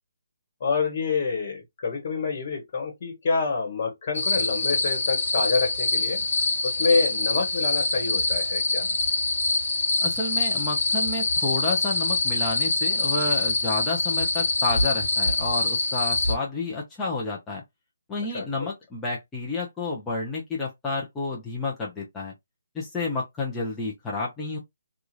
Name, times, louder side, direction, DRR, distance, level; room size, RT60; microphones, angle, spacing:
voice 1, 0.6-6.2 6.6-8.9 18.3-18.7, left 4 dB, 45° left, 1.3 m, -27 dB
sound 1, 4.1-16.3, left 3 dB, 70° left, 0.9 m, -25 dB
voice 2, 10.0-17.6 18.1-22.3 22.7-24.6, left 3 dB, 10° left, 0.8 m, -30 dB
2.8 x 2.4 x 2.4 m
figure-of-eight pair, 145°, 0 cm